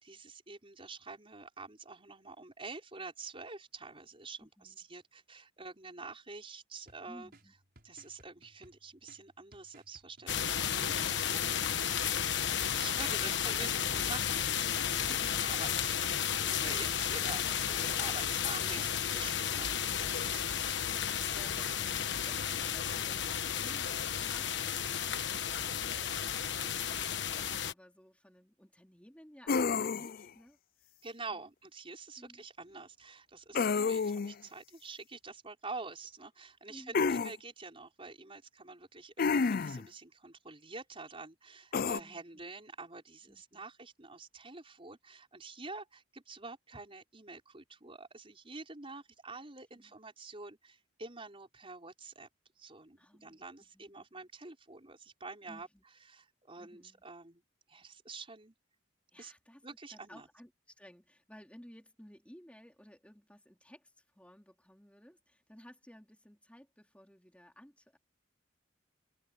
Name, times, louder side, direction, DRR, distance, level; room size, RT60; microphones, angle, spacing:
voice 1, 0.0-7.3 7.8-14.4 14.9-15.1 15.4-18.8 19.1-20.6 31.0-52.3 52.6-55.7 56.1-57.4 57.7-58.5 59.2-59.3 59.6-60.3, right 3 dB, 30° right, 5.1 m, -47 dB
voice 2, 4.4-4.8 7.1-7.5 18.4-19.2 20.5-30.9 31.3-31.4 32.2-32.4 36.7-37.1 42.0-42.5 43.3-43.6 49.3-49.4 49.7-50.0 53.0-54.0 55.5-55.8 56.6-57.0 59.1-68.0, equal, 5° left, 3.5 m, -57 dB
sound 1, 6.9-15.4, right 1 dB, 50° right, 6.4 m, -62 dB
sound 2, 10.3-27.7, left 9 dB, 65° left, 1.3 m, -33 dB
sound 3, 29.5-30.3 33.5-34.3 36.9-37.3 39.2-39.9 41.7-42.0, left 5 dB, 50° left, 0.5 m, -29 dB
open air
head